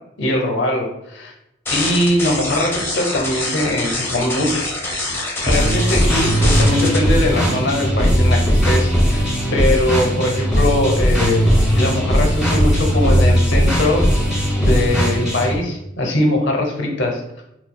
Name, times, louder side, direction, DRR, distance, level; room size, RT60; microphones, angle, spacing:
voice 1, 0.2-1.3 1.7-4.6 5.1-9.2 9.5-11.4 11.7-14.0 14.6-17.4, left 1 dB, 65° left, 1 dB, 0.8 m, -21 dB
sound 1, 1.7-7.0, left 2 dB, 10° left, 0.8 m, -25 dB
sound 2, 5.5-15.6, equal, 5° right, 1.3 m, -17 dB
5.8 x 2.3 x 2.2 m, 0.84 s
head